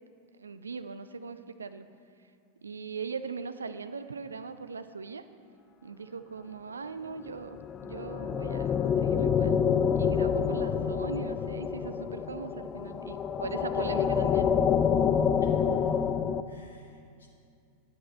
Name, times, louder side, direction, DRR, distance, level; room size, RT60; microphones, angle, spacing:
voice 1, 0.4-1.9 2.6-5.2 5.8-9.6 9.9-14.5, right 5 dB, 75° right, 11 dB, 0.4 m, -40 dB
sound 1, 7.5-16.4, left 7 dB, 25° left, 0.3 m, -27 dB
voice 2, 15.4-15.9 16.5-17.3, left 2 dB, 70° left, 1 dB, 0.7 m, -51 dB
10.0 x 7.8 x 4.3 m, 2.4 s
figure-of-eight pair, 90°, 0 cm